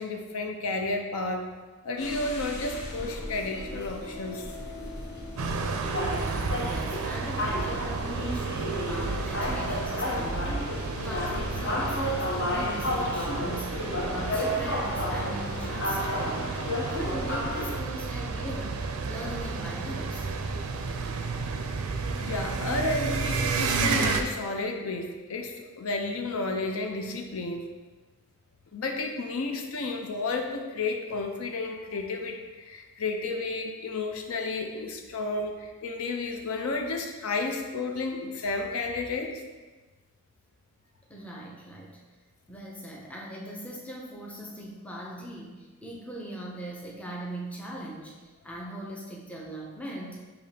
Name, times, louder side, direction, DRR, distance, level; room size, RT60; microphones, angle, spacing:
voice 1, 0.0-1.5 1.8-4.5 6.1-6.3 22.1-27.6 28.7-39.4, left 3 dB, 75° left, 3 dB, 0.5 m, -32 dB
sound 1, 2.0-17.8, left 1 dB, 55° left, 0.8 m, -33 dB
sound 2, 5.4-24.2, right 4 dB, 75° right, 0.4 m, -32 dB
voice 2, 6.1-20.3 41.1-42.0 42.5-50.2, equal, 5° left, -3 dB, 0.5 m, -40 dB
6.7 x 2.9 x 2.7 m, 1.3 s
head